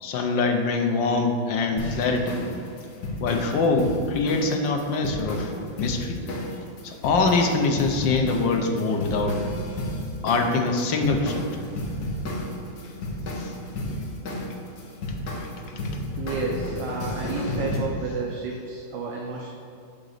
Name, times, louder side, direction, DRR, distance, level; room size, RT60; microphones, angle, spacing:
voice 1, 0.0-2.4 3.2-5.5 5.8-6.4 6.8-9.4 10.2-11.7 13.4-13.5 13.9-14.1, left 3 dB, 80° left, 3 dB, 1.5 m, -24 dB
sound 1, 1.8-17.8, left 1 dB, 60° left, 1.4 m, -32 dB
voice 2, 16.1-19.5, right 4 dB, 70° right, -1 dB, 1.3 m, -31 dB
7.9 x 3.9 x 6.5 m, 2.5 s
omnidirectional pair, 2.1 m